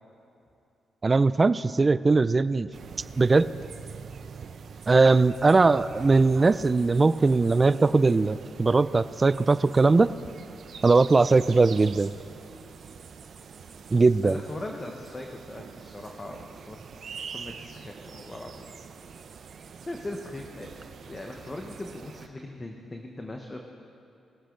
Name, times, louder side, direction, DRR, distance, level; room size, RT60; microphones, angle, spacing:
voice 1, 1.0-2.7 3.2-3.5 4.9-10.1 10.8-12.1 13.9-14.4, right 3 dB, 35° right, 15 dB, 0.4 m, -20 dB
sound 1, 2.7-22.3, right 6 dB, 65° right, 0.7 m, -44 dB
voice 2, 14.2-16.8 17.3-18.7 19.8-23.7, left 2 dB, 25° left, 2 dB, 1.0 m, -39 dB
21.0 x 7.5 x 3.8 m, 2.7 s
cardioid pair, 65°, 0 cm